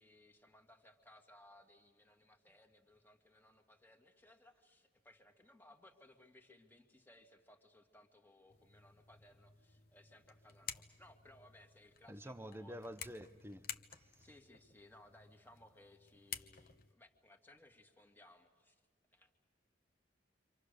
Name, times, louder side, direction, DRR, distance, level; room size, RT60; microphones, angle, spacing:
voice 1, 0.0-12.9 14.2-18.8 19.1-19.3, left 1 dB, 10° left, 1.8 m, -63 dB
sound 1, 8.5-16.9, left 8 dB, 50° left, 1.0 m, -52 dB
voice 2, 12.1-13.7 14.0-14.3, equal, 10° right, 0.8 m, -49 dB
29.0 x 25.5 x 6.6 m
head